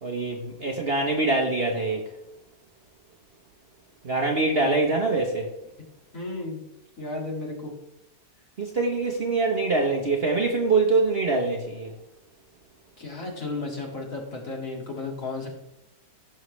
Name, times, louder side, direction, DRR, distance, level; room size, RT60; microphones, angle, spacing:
voice 1, 0.0-2.0 4.0-5.5 8.6-11.9, right 3 dB, 40° right, 1 dB, 1.1 m, -24 dB
voice 2, 4.4-4.8 6.1-6.6 7.0-7.7 13.0-15.5, left 3 dB, 50° left, -1 dB, 2.6 m, -34 dB
16.5 x 6.4 x 3.2 m, 0.89 s
omnidirectional pair, 1.9 m